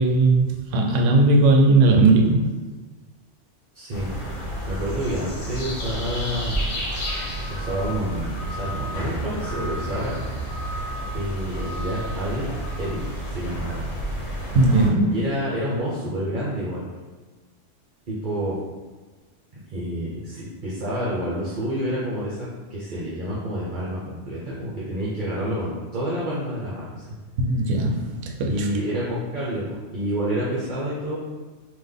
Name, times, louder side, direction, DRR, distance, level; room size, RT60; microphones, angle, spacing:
voice 1, 0.0-2.5 14.5-15.2 27.4-28.7, right 2 dB, 85° right, 2 dB, 0.9 m, -18 dB
voice 2, 3.7-4.1 4.6-6.6 7.5-10.2 11.1-13.8 15.1-16.8 18.1-18.6 19.7-27.1 28.5-31.2, equal, 45° right, -7 dB, 0.9 m, -28 dB
sound 1, 3.9-14.9, right 1 dB, 90° left, 1.2 m, -30 dB
3.9 x 2.8 x 3.5 m, 1.3 s
omnidirectional pair, 1.2 m